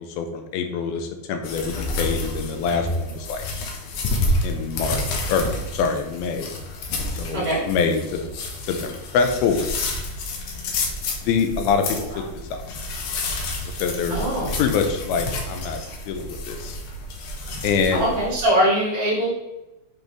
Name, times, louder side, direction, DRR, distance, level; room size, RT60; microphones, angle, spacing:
voice 1, 0.0-3.4 4.4-6.5 7.1-8.3 8.6-9.7 11.2-12.2 12.7-12.8 13.8-14.3 14.6-15.8 16.1-16.8 17.6-18.1, left 5 dB, 90° left, 6 dB, 2.6 m, -25 dB
tree palm leaves rustling softly, 1.4-18.4, left 2 dB, 70° left, 2.2 m, -29 dB
voice 2, 11.9-12.2 14.1-14.6 17.9-19.3, equal, 40° right, -6 dB, 3.3 m, -22 dB
7.6 x 5.1 x 3.1 m, 0.98 s
omnidirectional pair, 4.3 m